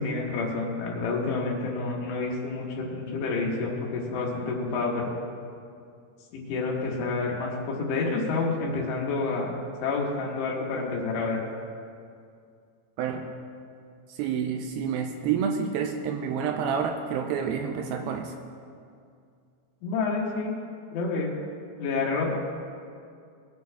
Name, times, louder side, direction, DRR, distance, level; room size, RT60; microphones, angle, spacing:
voice 1, 0.0-5.0 6.3-9.6 9.8-11.4 19.8-20.5 20.9-21.3 21.8-22.4, left 3 dB, 90° left, -2 dB, 3.9 m, -29 dB
voice 2, 14.1-18.3, right 7 dB, 85° right, 4 dB, 2.2 m, -29 dB
23.0 x 9.5 x 2.3 m, 2.3 s
omnidirectional pair, 4.9 m